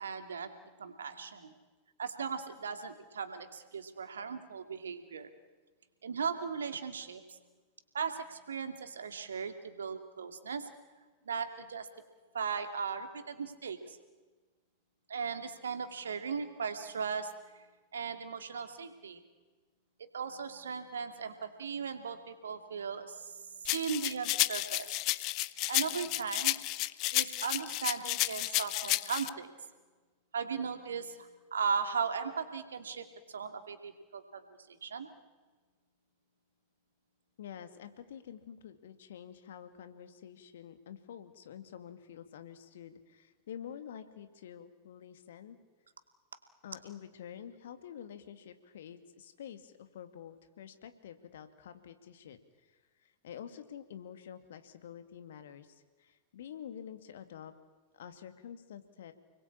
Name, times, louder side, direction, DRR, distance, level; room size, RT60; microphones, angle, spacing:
voice 1, 0.0-1.5 2.0-5.3 6.0-7.4 7.9-10.7 11.3-11.9 12.3-14.0 15.1-17.3 17.9-19.2 20.0-23.4 23.7-24.9 25.7-26.6 27.1-29.5 30.3-34.4 34.7-35.1, right 6 dB, 70° right, 7 dB, 2.6 m, -37 dB
sound 1, 23.7-29.3, left 19 dB, 40° left, 0.8 m, -32 dB
voice 2, 37.4-45.6 46.6-52.4 53.0-57.5 57.9-59.1, left 9 dB, 60° left, 9 dB, 2.3 m, -48 dB
30.0 x 21.5 x 8.7 m, 1.3 s
figure-of-eight pair, 90°, 0 cm